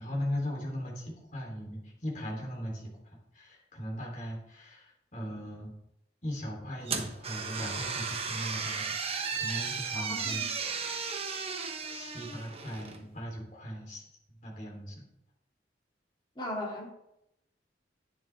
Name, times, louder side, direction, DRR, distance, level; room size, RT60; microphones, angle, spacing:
voice 1, 0.0-5.7 6.2-9.0 9.3-11.1 11.9-14.0 14.3-15.0, equal, 45° left, -1 dB, 3.5 m, -39 dB
sound 1, 6.9-13.0, right 5 dB, 35° right, 1.1 m, -35 dB
voice 2, 9.9-10.5 16.4-16.9, left 1 dB, 30° left, -3 dB, 3.0 m, -37 dB
10.5 x 10.5 x 3.6 m, 0.82 s
head